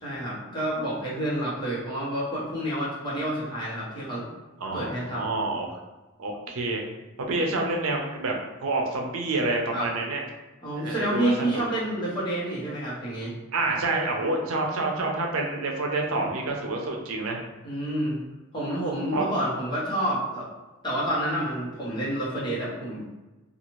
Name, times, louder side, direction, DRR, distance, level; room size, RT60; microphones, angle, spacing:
voice 1, 0.0-4.3 4.7-5.2 9.7-9.9 10.6-13.3 16.2-16.3 17.6-18.2 18.5-20.5 20.8-23.1, right 1 dB, 20° left, -8 dB, 1.0 m, -29 dB
voice 2, 4.6-5.8 6.2-6.8 7.3-8.3 8.6-10.2 10.7-11.7 13.5-17.4 19.1-19.2, right 2 dB, 85° right, 0 dB, 0.6 m, -28 dB
2.6 x 2.4 x 3.0 m, 1.1 s
head